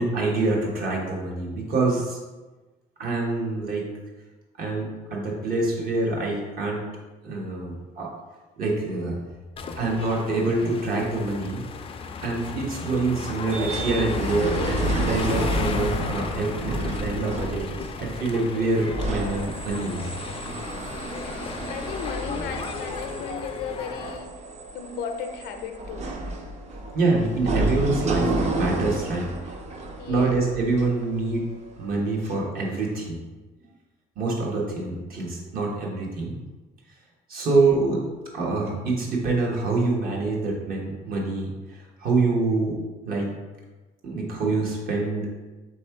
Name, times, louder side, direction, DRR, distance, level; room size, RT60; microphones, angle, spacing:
voice 1, 0.0-2.2 3.0-3.9 4.6-6.8 7.2-8.1 8.6-9.2 9.8-11.6 12.2-17.7 18.0-20.1 26.9-29.3 30.1-31.5 31.8-33.2 34.2-36.4 37.3-38.0 38.3-42.8 43.0-43.3 44.0-45.3, right 3 dB, 60° right, -2 dB, 1.3 m, -26 dB
sound 1, 9.6-24.2, left 5 dB, 35° left, 0.4 m, -34 dB
sound 2, 13.5-31.7 32.2-32.3, right 2 dB, 40° right, 0.7 m, -31 dB
voice 2, 21.2-24.3 24.7-26.2 30.0-30.3 37.5-37.8, left 6 dB, 85° left, 6 dB, 0.6 m, -36 dB
3.6 x 3.1 x 4.6 m, 1.2 s
cardioid pair, 110°, 17 cm